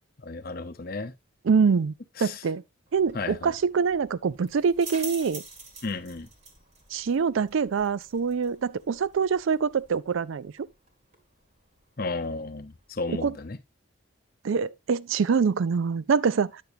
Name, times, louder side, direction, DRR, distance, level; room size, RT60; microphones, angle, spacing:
voice 1, 0.2-1.1 2.2-2.4 3.1-3.5 5.8-6.3 12.0-13.6, left 3 dB, 45° left, 0.7 m, -33 dB
voice 2, 1.4-1.9 2.2-2.6 2.9-5.4 6.9-10.5 13.1-13.4 14.4-16.6, right 5 dB, 70° right, 0.4 m, -25 dB
sound 1, 2.9-13.5, right 3 dB, 35° right, 1.7 m, -48 dB
9.2 x 6.8 x 2.7 m
head